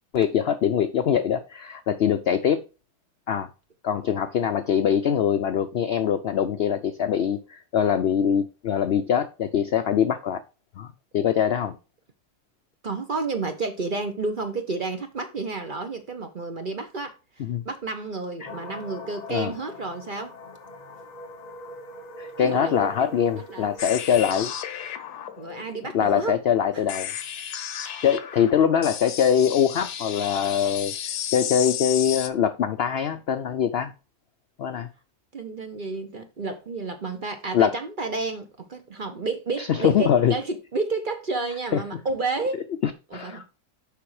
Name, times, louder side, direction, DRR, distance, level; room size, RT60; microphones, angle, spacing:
voice 1, 0.1-2.6 3.3-3.5 3.8-10.4 10.8-11.8 17.5-17.6 18.4-18.5 19.3-19.5 22.2-24.5 25.9-27.1 28.0-30.9 31.3-33.9 34.6-34.9 37.5-37.7 39.6-40.3 41.7-41.8 42.8-43.4, left 8 dB, 65° left, 0.6 m, -23 dB
voice 2, 12.8-20.3 22.4-23.1 23.5-23.7 25.4-26.8 27.8-28.2 35.3-42.6 43.1-43.4, right 3 dB, 40° right, 0.8 m, -31 dB
sound 1, 18.4-27.3, left 1 dB, 35° left, 0.9 m, -43 dB
sound 2, 23.8-32.3, left 10 dB, 85° left, 1.3 m, -33 dB
6.8 x 5.5 x 4.8 m
omnidirectional pair, 1.6 m